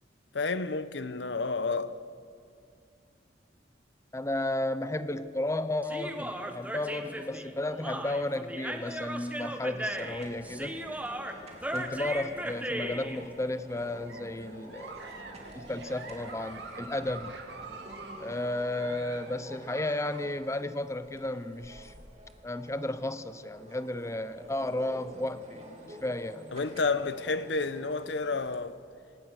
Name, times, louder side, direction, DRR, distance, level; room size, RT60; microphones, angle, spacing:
voice 1, 0.3-2.0 26.5-28.8, left 3 dB, 75° left, 0.9 m, -30 dB
voice 2, 4.1-10.8 11.7-15.0 15.5-17.3 18.2-21.9 22.4-26.5, left 1 dB, 15° left, 0.8 m, -33 dB
Human voice, 5.8-13.2, right 1 dB, 10° right, 1.4 m, -37 dB
sound 1, 9.9-28.6, right 1 dB, 40° right, 3.4 m, -50 dB
Giggle, 13.6-20.3, right 3 dB, 75° right, 2.3 m, -46 dB
27.5 x 17.0 x 6.6 m
head